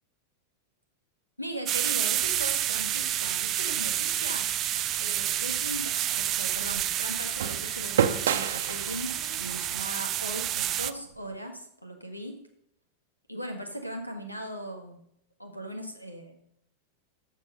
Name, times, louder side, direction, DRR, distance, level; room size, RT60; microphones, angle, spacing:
voice 1, 1.4-12.4 13.3-15.0 15.4-16.4, right 1 dB, 85° left, 5 dB, 1.6 m, -39 dB
sound 1, 1.7-10.9, right 12 dB, 30° right, 0.5 m, -29 dB
sound 2, 2.2-9.7, left 3 dB, 60° left, 1.4 m, -47 dB
sound 3, 5.2-11.3, right 8 dB, 60° right, 0.8 m, -33 dB
13.5 x 4.6 x 5.4 m, 0.74 s
figure-of-eight pair, 90°, 0 cm